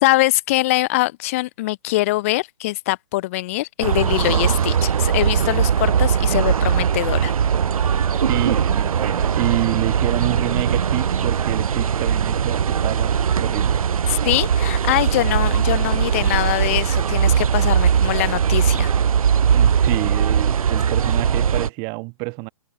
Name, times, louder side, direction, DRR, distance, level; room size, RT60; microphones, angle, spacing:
voice 1, 0.0-7.3 14.1-18.9, left 19 dB, 25° left, 0.8 m, -23 dB
sound 1, 3.8-21.7, right 7 dB, 80° right, 0.7 m, -20 dB
voice 2, 8.3-13.8 19.5-22.5, right 33 dB, 20° right, 5.5 m, -28 dB
hypercardioid pair, 165°, 18 cm